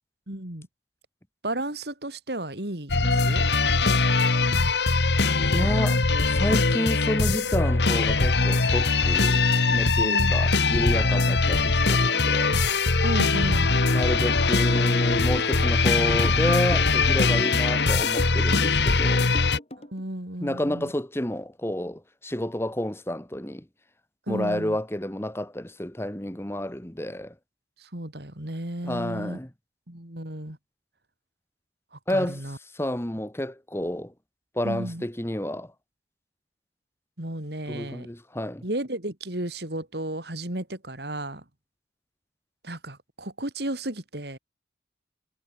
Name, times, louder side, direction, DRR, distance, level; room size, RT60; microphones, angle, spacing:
voice 1, 0.3-0.7 1.4-3.5 6.8-6.9 10.0-10.5 13.0-13.7 17.3-17.6 19.8-20.9 24.3-24.8 27.8-29.4 29.9-30.6 31.9-32.6 34.6-35.0 37.2-38.1 38.6-41.4 42.6-44.4, right 1 dB, 60° right, 3.4 m, -33 dB
sound 1, 2.9-19.6, left 3 dB, 70° left, 1.5 m, -22 dB
voice 2, 5.4-6.0 6.3-12.6 13.9-19.3 20.4-23.6 24.3-27.3 28.8-29.5 32.1-32.4 32.8-34.1 34.5-35.7 37.7-38.6, left 1 dB, 15° left, 1.5 m, -30 dB
sound 2, 14.7-20.0, left 1 dB, 35° left, 3.9 m, -40 dB
head